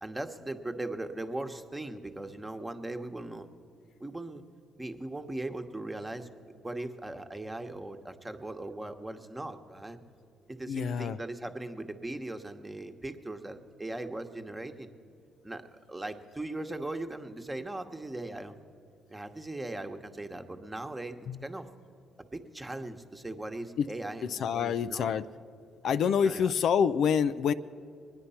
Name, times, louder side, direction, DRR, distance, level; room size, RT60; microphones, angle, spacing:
voice 1, 0.0-3.5 4.0-4.4 4.8-6.3 6.6-10.0 10.5-14.9 15.4-18.5 19.1-21.7 22.2-25.2 26.0-26.5, right 2 dB, 15° right, 6 dB, 1.1 m, -39 dB
voice 2, 10.7-11.2 21.3-21.4 23.8-23.9 24.2-25.3 25.8-27.5, left 7 dB, 70° left, 12 dB, 0.4 m, -27 dB
21.5 x 9.7 x 5.7 m, 2.5 s
supercardioid pair, 65°, 0 cm